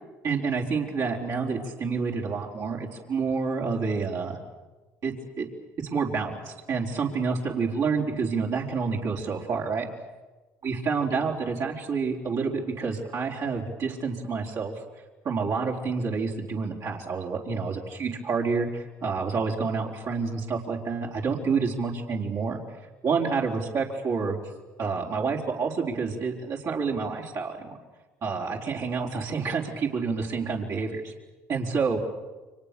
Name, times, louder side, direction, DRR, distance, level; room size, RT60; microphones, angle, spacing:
voice 1, 0.2-4.4 5.0-5.5 5.8-9.9 10.6-14.7 15.2-22.6 23.0-24.4 24.8-27.8 28.2-31.1 31.5-32.0, right 5 dB, 60° right, -2 dB, 4.3 m, -28 dB
30.0 x 24.5 x 6.9 m, 1.2 s
supercardioid pair, 70°, 6 cm